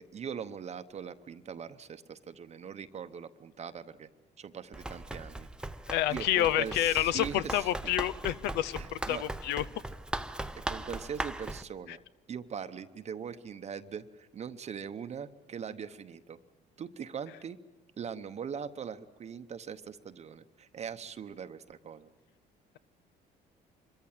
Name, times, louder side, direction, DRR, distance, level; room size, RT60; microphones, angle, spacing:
voice 1, 0.0-4.1 4.4-5.7 6.1-7.7 8.6-9.2 10.7-12.0 12.3-16.4 16.8-17.6 18.0-22.1, right 7 dB, 40° right, 9 dB, 0.8 m, -41 dB
Run, 4.7-11.6, right 1 dB, 5° right, 0.6 m, -39 dB
voice 2, 5.9-9.6 11.9-12.0, left 13 dB, 90° left, 19 dB, 0.6 m, -29 dB
25.0 x 14.5 x 9.0 m, 1.3 s
cardioid pair, 110°, 17 cm